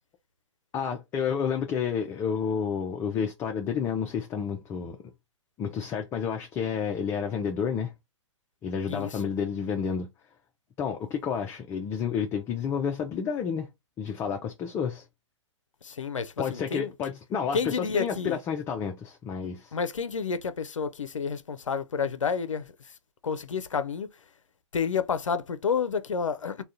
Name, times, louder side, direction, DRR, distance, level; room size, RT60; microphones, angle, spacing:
voice 1, 0.7-5.0 5.6-7.9 8.6-10.1 10.8-13.7 14.0-15.0 16.4-19.7, left 7 dB, 15° left, 0.3 m, -30 dB
voice 2, 8.9-9.2 15.8-16.9 17.5-18.4 19.7-22.7 23.2-24.1 24.7-26.6, left 6 dB, 80° left, 0.4 m, -30 dB
3.5 x 2.2 x 2.6 m
figure-of-eight pair, 115°, 16 cm